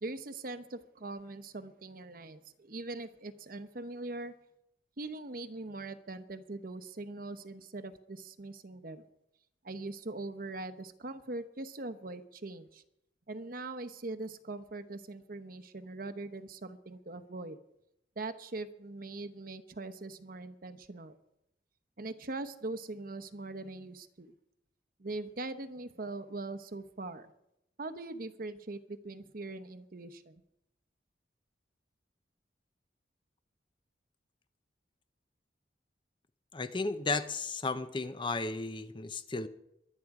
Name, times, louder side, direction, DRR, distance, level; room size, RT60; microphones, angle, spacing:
voice 1, 0.0-4.3 5.0-9.0 9.6-12.8 13.3-17.6 18.2-21.2 22.0-24.3 25.0-27.3 27.8-30.4, right 2 dB, 50° right, 11 dB, 0.9 m, -41 dB
voice 2, 36.5-39.5, left 3 dB, 25° left, 11 dB, 0.6 m, -34 dB
23.0 x 9.4 x 4.8 m, 0.82 s
head